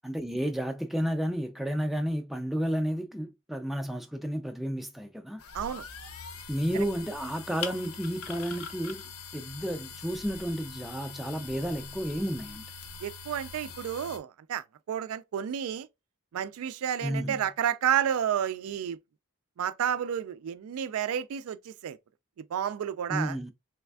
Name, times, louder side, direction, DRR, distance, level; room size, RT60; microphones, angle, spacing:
voice 1, 0.0-5.4 6.5-9.0 9.3-12.6 17.0-17.4 23.1-23.5, equal, ahead, 0.3 m, -31 dB
sound 1, 5.4-14.2, left 5 dB, 90° left, 0.6 m, -43 dB
voice 2, 13.0-15.9 16.3-19.0 19.6-22.0 22.5-23.4, right 9 dB, 80° right, 0.3 m, -31 dB
3.3 x 3.2 x 2.2 m
head